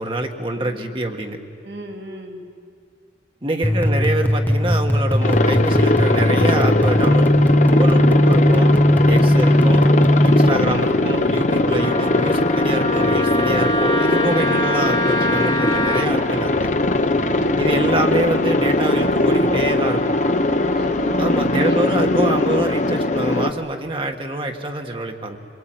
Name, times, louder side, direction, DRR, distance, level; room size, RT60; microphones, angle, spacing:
voice 1, 0.0-1.4 3.4-7.3 7.7-8.7 9.1-9.8 10.2-16.7 17.6-20.2 21.2-25.4, right 1 dB, 30° right, 3 dB, 1.5 m, -25 dB
voice 2, 1.6-2.5 3.7-4.1 17.3-17.8 20.7-21.2 21.7-21.9, equal, 70° right, 2 dB, 2.7 m, -37 dB
sound 1, 3.6-10.5, left 1 dB, 10° left, 1.0 m, -17 dB
Aircraft, 5.2-23.5, left 2 dB, 40° left, 1.0 m, -20 dB
Wind instrument woodwind instrument, 11.8-16.1, left 1 dB, 25° left, 1.8 m, -24 dB
27.0 x 22.0 x 9.2 m, 2.2 s
head